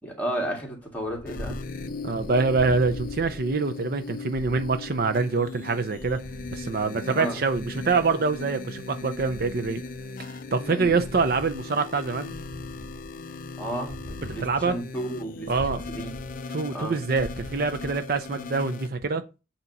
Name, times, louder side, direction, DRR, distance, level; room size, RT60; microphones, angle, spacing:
voice 1, 0.0-1.6 7.1-7.4 10.7-11.0 13.6-16.1 16.7-17.0, right 1 dB, 10° left, -1 dB, 1.9 m, -33 dB
Purr, 0.9-18.6, equal, 75° right, 1.5 m, -43 dB
sound 1, 1.3-18.9, left 3 dB, 45° left, 0.5 m, -38 dB
voice 2, 2.0-6.2 6.5-9.8 10.2-12.3 14.4-14.8 15.5-15.8 16.5-19.2, right 4 dB, 50° right, 9 dB, 0.6 m, -25 dB
8.3 x 2.9 x 5.3 m, 0.30 s
head